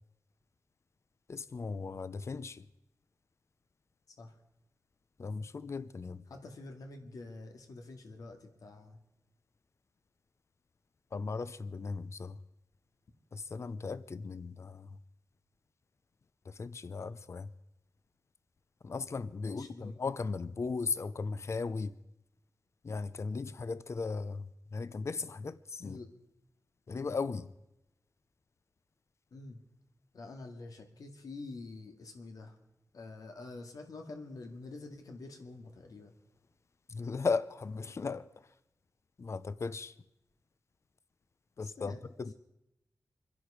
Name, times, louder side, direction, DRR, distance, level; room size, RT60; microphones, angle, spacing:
voice 1, 1.3-2.6 5.2-6.2 11.1-12.4 13.3-15.0 16.5-17.5 18.8-21.9 22.8-26.0 26.9-27.5 36.9-38.3 39.2-39.9 41.6-41.9 42.2-42.3, left 4 dB, 50° left, 0.6 m, -37 dB
voice 2, 6.3-9.0 19.4-19.9 25.8-26.1 29.3-29.6 30.1-32.6 32.9-36.1 41.6-42.0, left 3 dB, 90° left, 2.1 m, -47 dB
25.5 x 11.0 x 5.0 m
wide cardioid pair, 100°, 6 cm